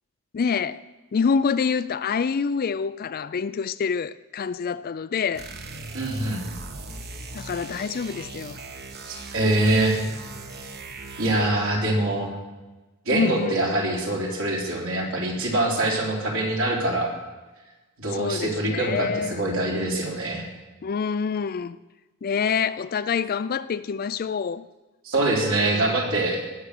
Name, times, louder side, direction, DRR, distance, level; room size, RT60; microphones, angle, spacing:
voice 1, 0.3-0.8 1.1-5.5 7.3-8.6 13.1-13.6 18.1-19.4 20.8-21.8 22.2-24.7, left 6 dB, 40° left, 0.4 m, -26 dB
sound 1, 5.3-11.6, right 3 dB, 45° right, 1.2 m, -39 dB
voice 2, 5.9-6.4 9.0-10.0 11.2-12.4 13.1-17.1 18.0-20.4 25.0-26.4, right 1 dB, 65° right, 3.5 m, -24 dB
18.5 x 7.4 x 6.6 m
head